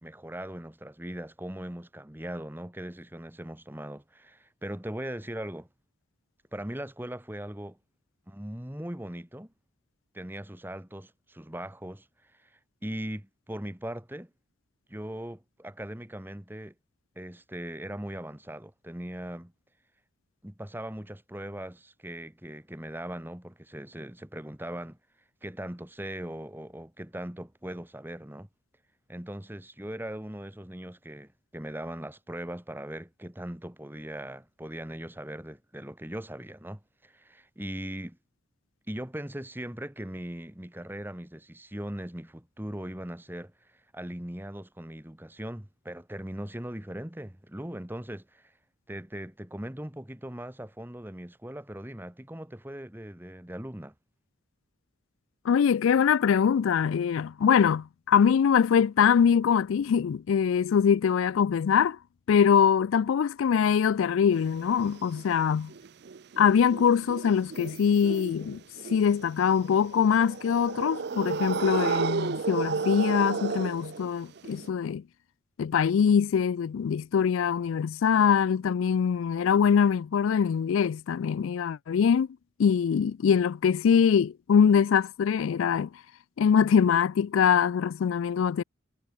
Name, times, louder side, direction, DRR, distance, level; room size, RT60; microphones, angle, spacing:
voice 1, 0.0-5.7 6.5-7.8 8.3-9.5 10.1-14.3 14.9-16.7 17.1-19.5 20.4-25.0 25.4-28.5 29.1-38.2 38.9-48.5 48.9-53.9, right 1 dB, 10° right, 1.3 m, -39 dB
voice 2, 55.4-62.0 62.3-65.7 66.4-68.6 68.9-75.0 75.6-82.3 82.6-86.0 86.4-88.6, left 7 dB, 70° left, 0.3 m, -23 dB
sound 1, 64.3-74.7, right 5 dB, 50° right, 0.5 m, -33 dB
head